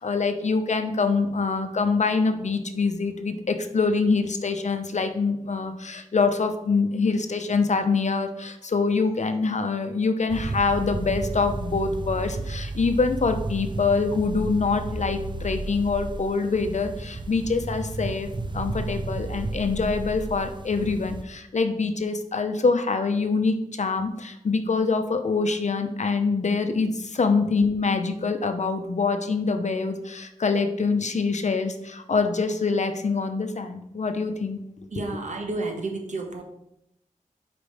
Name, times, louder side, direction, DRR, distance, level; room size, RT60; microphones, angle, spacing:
voice 1, 0.0-18.3 18.5-34.6, left 4 dB, 60° left, 7 dB, 0.7 m, -25 dB
sound 1, 10.3-21.2, right 3 dB, 35° right, 0.5 m, -33 dB
voice 2, 34.9-36.4, right 3 dB, 60° right, 2 dB, 1.3 m, -31 dB
5.2 x 5.0 x 4.9 m, 0.79 s
wide cardioid pair, 60°, 14 cm